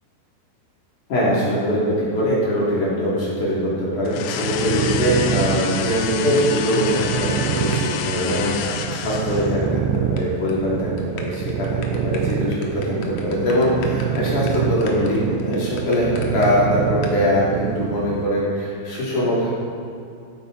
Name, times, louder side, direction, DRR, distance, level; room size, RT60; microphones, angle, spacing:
voice 1, 1.1-19.5, equal, 50° left, -7 dB, 4.4 m, -22 dB
sound 1, 4.1-9.7, left 8 dB, 85° left, 2.1 m, -29 dB
sound 2, 4.4-18.3, right 8 dB, 85° right, 2.8 m, -27 dB
sound 3, 6.2-7.9 8.2-8.3 8.7-8.8 9.0-9.1 9.3-9.4 9.6-10.2 10.5-10.6 11.0-16.5 17.0-17.2, left 5 dB, 65° left, 1.7 m, -38 dB
15.5 x 9.8 x 4.3 m, 2.4 s
omnidirectional pair, 5.0 m